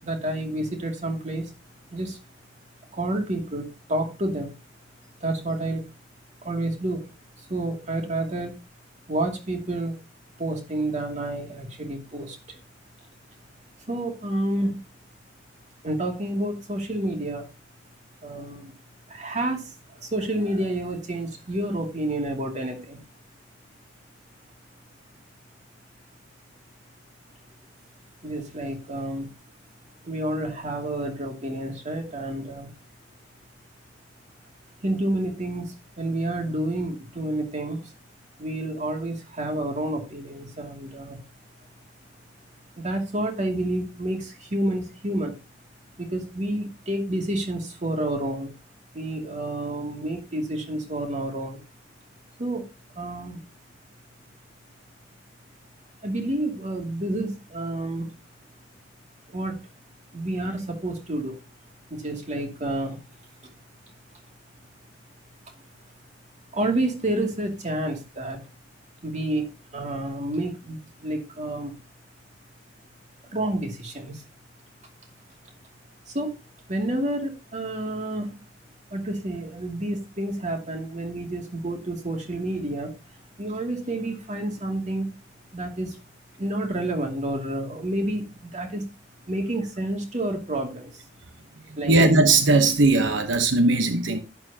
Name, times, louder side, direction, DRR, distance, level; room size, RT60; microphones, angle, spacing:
voice 1, 0.0-1.5 1.9-2.2 2.9-4.5 5.2-5.8 6.4-7.1 7.4-8.5 9.1-9.9 10.4-12.6 13.9-14.8 15.8-17.4 18.2-18.7 19.1-19.7 20.0-23.0 28.2-29.3 30.0-32.7 34.8-37.8 38.4-41.2 42.8-45.4 46.0-48.5 48.9-51.6 52.4-52.6 52.9-53.4 56.0-58.1 59.3-59.6 60.1-61.4 61.9-63.0 63.4-63.5 66.5-68.4 69.0-71.8 73.3-74.2 76.1-76.3 76.7-78.5 78.9-82.9 83.4-85.1 85.5-86.0 86.4-88.8 89.3-91.0 91.8-92.0, right 1 dB, 40° right, 2.5 m, -29 dB
voice 2, 91.9-94.2, right 2 dB, 80° right, 1.0 m, -19 dB
11.0 x 9.7 x 2.8 m
head